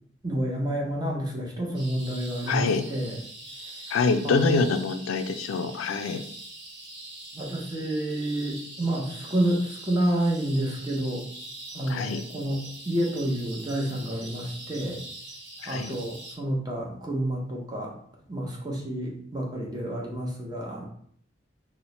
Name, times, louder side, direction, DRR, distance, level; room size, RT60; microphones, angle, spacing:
voice 1, 0.2-3.2 3.5-3.9 4.2-4.6 7.3-11.2 11.7-15.0 15.7-18.0 18.3-20.9, right 1 dB, 20° right, -2 dB, 0.6 m, -29 dB
sound 1, 1.7-16.4, right 2 dB, 60° right, 1.0 m, -43 dB
voice 2, 2.5-2.8 3.9-6.2 11.9-12.2 15.6-15.9, left 4 dB, 85° left, 9 dB, 0.3 m, -25 dB
2.9 x 2.1 x 4.1 m, 0.62 s
head